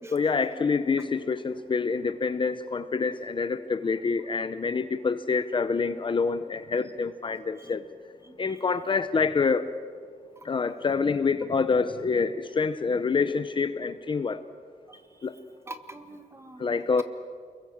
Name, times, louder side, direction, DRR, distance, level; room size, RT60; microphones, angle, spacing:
voice 1, 0.1-7.8 8.4-9.7 10.4-14.4 15.2-15.3 16.6-17.0, left 5 dB, 35° left, 11 dB, 0.7 m, -26 dB
voice 2, 8.2-8.5 10.3-10.5 14.9-15.3 15.6-16.7, right 2 dB, 20° right, 8 dB, 1.6 m, -45 dB
29.5 x 22.0 x 7.3 m, 2.1 s
wide cardioid pair, 155°, 15 cm